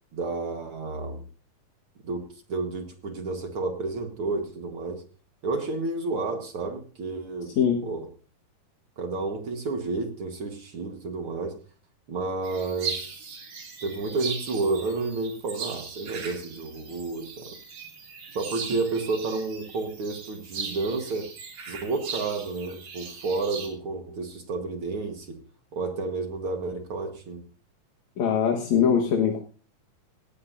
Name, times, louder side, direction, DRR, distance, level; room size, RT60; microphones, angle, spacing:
voice 1, 0.1-1.2 2.0-5.0 5.4-7.5 7.8-8.1 9.0-11.6 12.1-13.4 13.8-17.6 18.3-21.3 21.7-25.4 25.7-27.4, right 3 dB, 50° right, 5 dB, 1.9 m, -31 dB
sound 1, 12.4-23.7, right 5 dB, 70° right, 4.3 m, -39 dB
voice 2, 28.2-29.4, left 7 dB, 60° left, 1 dB, 2.6 m, -22 dB
18.0 x 15.5 x 2.7 m, 0.39 s
omnidirectional pair, 3.7 m